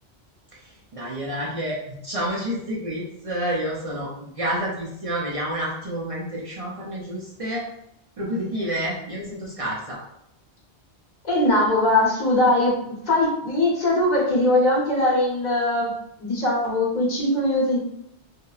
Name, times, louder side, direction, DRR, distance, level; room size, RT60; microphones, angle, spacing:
voice 1, 0.6-7.6 8.2-10.0, right 1 dB, 50° right, -4 dB, 0.4 m, -29 dB
voice 2, 11.2-12.8 13.0-15.9 16.2-17.8, left 1 dB, 45° left, -4 dB, 0.9 m, -21 dB
2.9 x 2.0 x 2.3 m, 0.77 s
omnidirectional pair, 1.1 m